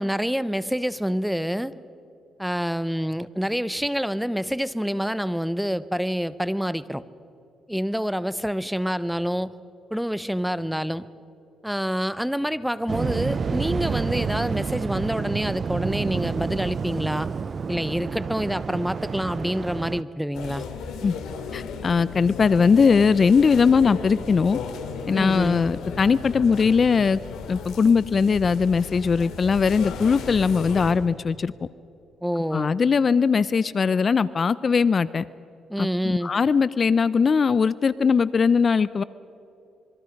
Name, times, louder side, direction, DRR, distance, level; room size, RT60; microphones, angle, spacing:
voice 1, 0.0-1.7 2.4-7.0 7.7-9.5 9.9-11.1 11.6-17.3 17.7-20.7 25.1-25.6 32.2-32.8 35.7-36.3, equal, ahead, 16 dB, 0.8 m, -27 dB
Waves surf, 12.9-20.0, right 5 dB, 40° right, 0.6 m, -29 dB
sound 1, 20.3-30.9, left 5 dB, 80° left, 2.7 m, -35 dB
voice 2, 21.5-24.6 25.1-27.2 27.5-31.5 32.5-35.3 35.8-39.0, left 5 dB, 40° left, 17 dB, 0.5 m, -20 dB
26.5 x 23.0 x 5.3 m, 2.8 s
cardioid pair, 90°, 0 cm